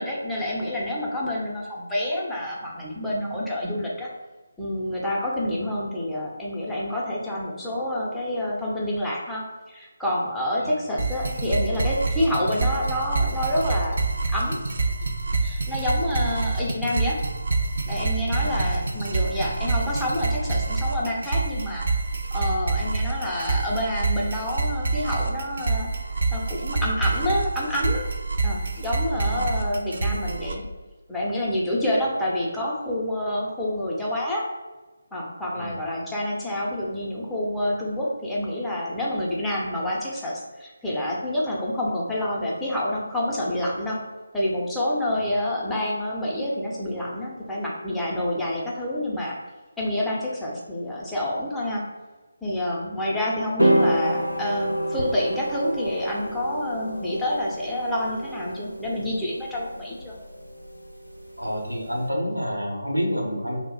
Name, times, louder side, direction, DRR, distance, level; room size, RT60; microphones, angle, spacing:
voice 1, 0.0-4.1 4.6-9.4 9.7-14.0 14.3-14.6 15.4-17.2 17.9-21.9 22.3-28.1 28.4-30.6 31.1-34.4 35.1-44.0 44.3-49.4 49.8-51.8 52.4-60.2, left 1 dB, 5° left, -7 dB, 0.5 m, -28 dB
sound 1, 11.0-30.5, right 3 dB, 55° right, 0.4 m, -26 dB
voice 2, 18.4-18.7 29.2-29.5 35.5-35.7 45.1-45.2 61.4-63.6, equal, 85° right, 0 dB, 0.8 m, -29 dB
sound 2, 53.6-62.0, right 1 dB, 90° left, 0.4 m, -28 dB
2.3 x 2.0 x 3.8 m, 1.2 s
figure-of-eight pair, 150°, 0 cm